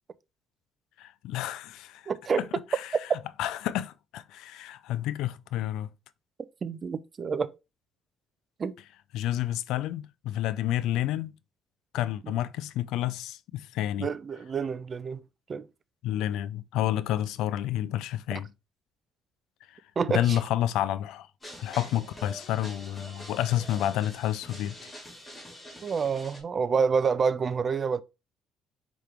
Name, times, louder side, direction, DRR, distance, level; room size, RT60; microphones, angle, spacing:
voice 1, 1.0-2.0 2.4-2.5 2.7-2.9 3.4-5.9 9.1-11.3 11.9-14.1 16.0-18.5 20.1-21.3 21.6-24.8, left 12 dB, 80° left, 0.3 m, -29 dB
voice 2, 2.1-2.4 6.6-7.5 8.6-8.8 12.2-12.3 14.0-15.2 15.5-15.7 18.3-18.4 20.0-20.4 25.8-28.0, right 5 dB, 40° right, 0.4 m, -28 dB
sound 1, 21.4-26.4, equal, 15° left, 2.0 m, -45 dB
4.9 x 3.0 x 3.3 m
cardioid pair, 100°, 0 cm